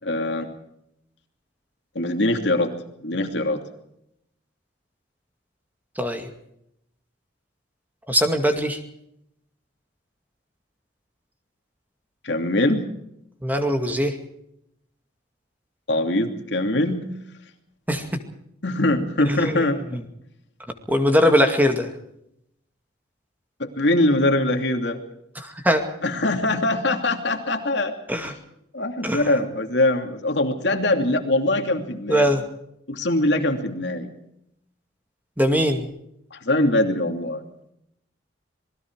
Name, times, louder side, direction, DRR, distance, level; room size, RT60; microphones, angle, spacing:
voice 1, 0.0-0.5 1.9-2.7 3.0-3.6 12.2-12.8 15.9-17.1 18.6-19.8 23.6-25.0 26.0-27.9 28.7-32.3 32.9-34.1 36.3-37.4, left 1 dB, 65° left, 5 dB, 2.8 m, -22 dB
voice 2, 6.0-6.3 8.1-8.8 13.4-14.1 17.9-18.0 19.3-20.0 20.9-21.9 25.4-25.8 28.1-28.3 29.0-29.2 32.1-32.4 35.4-35.9, equal, 10° right, 5 dB, 2.2 m, -21 dB
26.5 x 20.5 x 4.8 m, 0.78 s
head